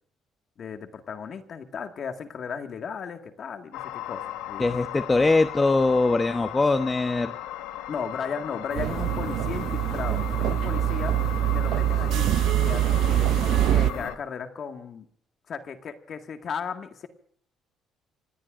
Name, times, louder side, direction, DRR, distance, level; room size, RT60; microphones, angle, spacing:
voice 1, 0.6-5.0 7.9-11.1 11.5-12.3 12.6-15.1 15.5-17.1, left 6 dB, 55° left, 5 dB, 1.8 m, -35 dB
sound 1, 3.7-14.2, left 12 dB, 90° left, 1.3 m, -37 dB
voice 2, 4.6-7.3, left 3 dB, 25° left, 8 dB, 1.0 m, -22 dB
sound 2, 8.7-14.1, right 6 dB, 55° right, 2.9 m, -41 dB
sound 3, 8.8-13.9, right 13 dB, 75° right, 0.5 m, -24 dB
27.5 x 19.0 x 2.6 m, 0.62 s
supercardioid pair, 75°, 0 cm